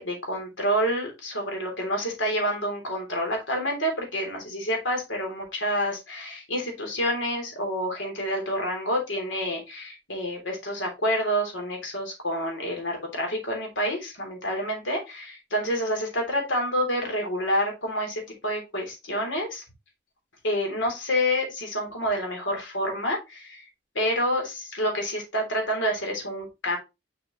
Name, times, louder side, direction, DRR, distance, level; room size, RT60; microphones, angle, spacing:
voice 1, 0.0-19.6 20.4-23.7 23.9-26.8, equal, 80° left, 2 dB, 3.2 m, -28 dB
6.3 x 6.0 x 3.1 m, 0.24 s
head